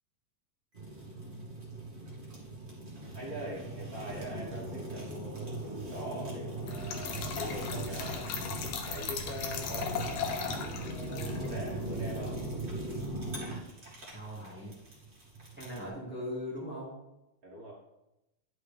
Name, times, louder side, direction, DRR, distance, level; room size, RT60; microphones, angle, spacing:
Fire, 0.7-15.9, right 1 dB, 25° right, 1.6 m, -40 dB
voice 1, 3.1-8.3 8.8-12.4 17.4-17.7, right 1 dB, 60° right, -4 dB, 0.9 m, -43 dB
Trickle dribble / Fill (with liquid), 6.7-13.4, left 5 dB, 75° left, 2.5 m, -39 dB
voice 2, 14.1-14.7 15.6-17.0, left 1 dB, 5° right, -5 dB, 1.2 m, -39 dB
11.0 x 5.8 x 3.4 m, 0.92 s
omnidirectional pair, 4.0 m